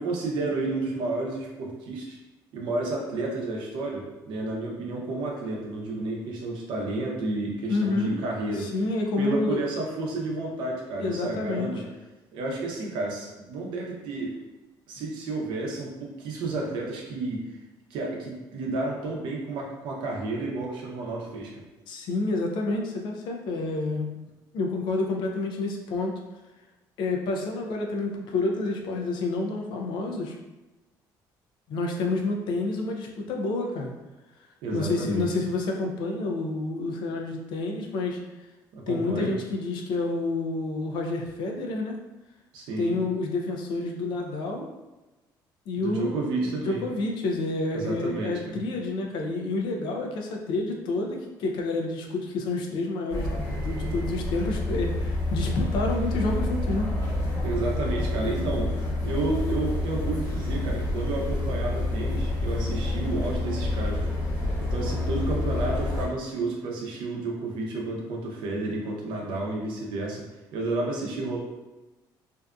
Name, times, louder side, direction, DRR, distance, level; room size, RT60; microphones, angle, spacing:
voice 1, 0.0-2.2 2.5-8.7 9.2-11.8 12.3-14.3 14.9-17.5 17.9-21.6 34.6-35.3 38.7-39.3 42.5-43.0 45.8-46.8 47.7-48.6 57.4-58.7 59.0-64.1 64.7-70.2 70.5-71.4, right 2 dB, 75° right, -1 dB, 0.6 m, -31 dB
voice 2, 7.7-8.2 8.5-9.6 11.0-11.8 21.9-24.2 24.5-26.2 27.0-30.4 31.7-33.9 34.7-38.2 38.9-42.0 42.8-44.7 45.7-56.9 57.9-58.4, left 2 dB, 70° left, 1 dB, 0.4 m, -29 dB
sound 1, 53.1-66.1, left 2 dB, 50° left, 1.2 m, -28 dB
2.6 x 2.3 x 2.3 m, 1.1 s
cardioid pair, 135°, 8 cm